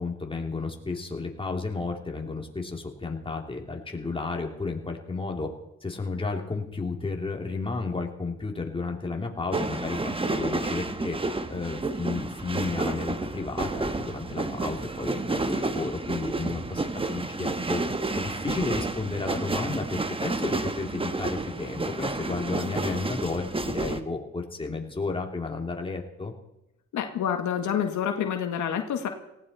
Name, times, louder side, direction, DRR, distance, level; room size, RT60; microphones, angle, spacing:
voice 1, 0.0-5.5 5.8-11.2 11.5-16.8 17.1-26.3, left 3 dB, 15° left, 1 dB, 2.9 m, -32 dB
sound 1, 9.5-24.0, right 3 dB, 20° right, 1.2 m, -30 dB
voice 2, 26.9-29.1, left 8 dB, 75° left, 5 dB, 1.8 m, -28 dB
18.5 x 16.0 x 4.3 m, 0.87 s
cardioid pair, 90°, 30 cm